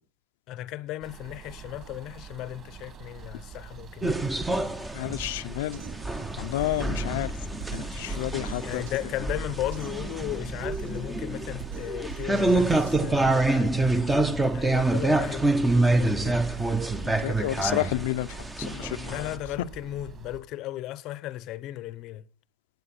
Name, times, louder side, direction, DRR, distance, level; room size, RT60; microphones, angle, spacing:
voice 1, 0.5-4.2 8.6-16.4 19.1-22.3, left 14 dB, 35° left, 0.8 m, -35 dB
sound 1, 1.0-20.4, right 6 dB, 25° right, 2.4 m, -43 dB
sound 2, 4.0-19.4, right 2 dB, 5° right, 0.8 m, -27 dB
voice 2, 4.9-5.8 6.4-7.3 7.7-8.8 17.0-18.3 18.6-19.3, left 16 dB, 70° left, 0.7 m, -30 dB
Drum kit, 5.7-13.7, right 8 dB, 70° right, 4.1 m, -43 dB
17.5 x 9.0 x 6.0 m
supercardioid pair, 170°, 0 cm